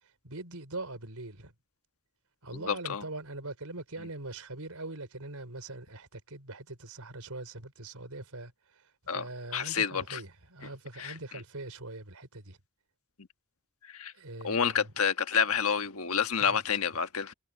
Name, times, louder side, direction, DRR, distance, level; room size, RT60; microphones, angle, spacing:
voice 1, 0.2-1.5 2.4-8.5 9.1-12.6 14.1-14.9 16.5-16.6, right 2 dB, 75° right, 4.4 m, -42 dB
voice 2, 2.5-3.0 9.1-10.2 11.0-11.1 13.9-14.1 14.4-17.3, left 6 dB, 70° left, 1.4 m, -29 dB
head